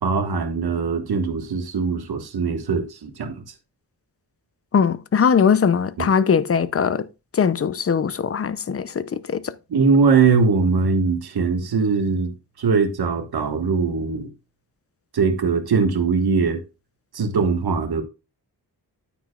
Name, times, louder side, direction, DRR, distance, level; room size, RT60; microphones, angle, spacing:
voice 1, 0.0-3.4 6.0-6.1 9.7-14.3 15.1-16.6 17.1-18.0, right 5 dB, 65° right, 1.6 m, -21 dB
voice 2, 4.7-7.0 7.3-9.5, left 6 dB, 35° left, 0.6 m, -20 dB
9.3 x 9.2 x 2.4 m
wide cardioid pair, 150°, 41 cm